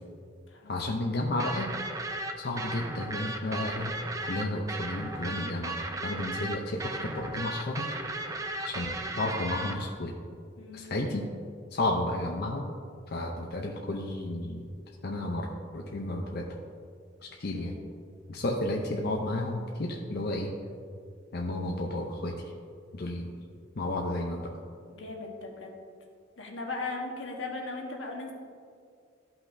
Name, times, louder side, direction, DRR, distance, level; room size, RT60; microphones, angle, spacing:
voice 1, 0.7-1.7 2.4-4.0 4.3-7.9 8.6-10.2 10.7-11.3 11.7-12.7 13.1-14.6 15.0-15.5 15.7-16.5 17.4-17.8 18.3-20.5 21.3-22.5 22.9-23.3 23.8-24.5, left 1 dB, 55° left, 0 dB, 0.6 m, -32 dB
sound 1, 1.4-9.7, right 2 dB, 20° right, 0.5 m, -35 dB
voice 2, 10.6-11.0 17.5-17.8 24.9-25.7 26.4-28.3, left 3 dB, 85° left, 0 dB, 1.3 m, -38 dB
13.5 x 5.7 x 2.6 m, 2.3 s
head